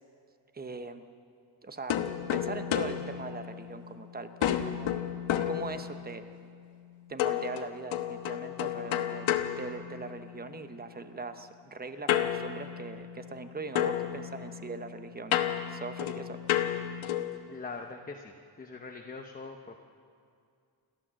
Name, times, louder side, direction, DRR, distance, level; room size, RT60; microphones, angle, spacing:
voice 1, 0.5-1.0 1.6-1.9 2.3-4.9 5.5-6.3 7.1-15.4 15.7-16.4, right 3 dB, 20° right, 9 dB, 0.9 m, -40 dB
sound 1, 1.9-4.0 4.4-6.2 7.2-10.4 12.1-13.5 13.7-17.4, left 11 dB, 85° left, 1.2 m, -32 dB
voice 2, 17.5-19.8, left 4 dB, 20° left, 2 dB, 0.9 m, -42 dB
28.5 x 12.5 x 7.6 m, 2.3 s
wide cardioid pair, 160°, 47 cm